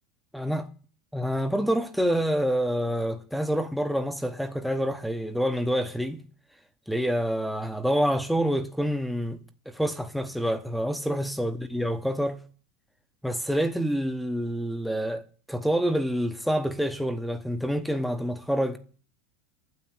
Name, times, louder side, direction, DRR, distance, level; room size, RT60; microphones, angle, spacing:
voice 1, 0.3-0.7 1.1-6.2 6.9-9.4 9.7-12.4 13.2-15.2 15.5-18.8, equal, ahead, 0.9 m, -27 dB
9.4 x 7.4 x 9.1 m
supercardioid pair, 150°, 0 cm